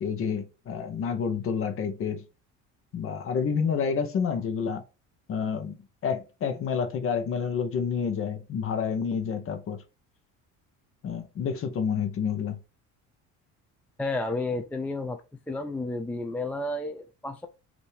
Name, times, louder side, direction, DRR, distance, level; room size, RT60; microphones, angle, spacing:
voice 1, 0.0-2.2 2.9-4.8 5.3-9.8 11.0-12.6, left 6 dB, 45° left, 0.8 m, -29 dB
voice 2, 14.0-15.2 15.5-17.5, left 2 dB, 5° left, 0.3 m, -31 dB
5.5 x 2.7 x 3.4 m
cardioid pair, 135°, 32 cm